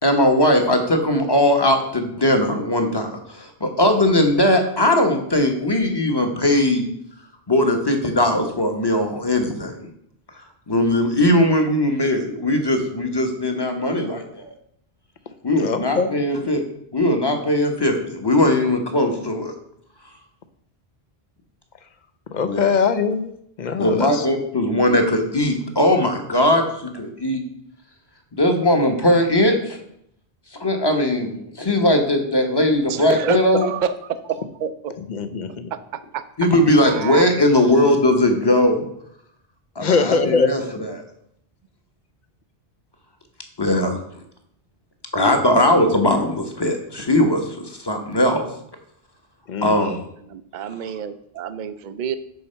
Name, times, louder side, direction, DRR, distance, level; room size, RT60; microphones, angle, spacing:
voice 1, 0.0-6.9 7.5-9.9 10.7-14.5 15.4-16.6 16.9-19.5 22.4-22.7 23.8-27.4 28.3-29.8 30.6-33.7 36.4-38.8 39.8-40.6 43.6-44.0 45.1-48.4 49.6-50.0, left 1 dB, 25° left, 4 dB, 1.1 m, -19 dB
voice 2, 15.6-16.1 22.3-24.3 35.0-35.7 39.8-40.5 49.5-49.8, left 5 dB, 50° left, 10 dB, 0.8 m, -22 dB
voice 3, 32.9-34.0 34.2-34.9 35.7-35.8 36.1-36.2 36.8-37.2 50.3-52.2, right 7 dB, 55° right, 12 dB, 0.6 m, -27 dB
9.6 x 4.2 x 5.6 m, 0.72 s
omnidirectional pair, 1.0 m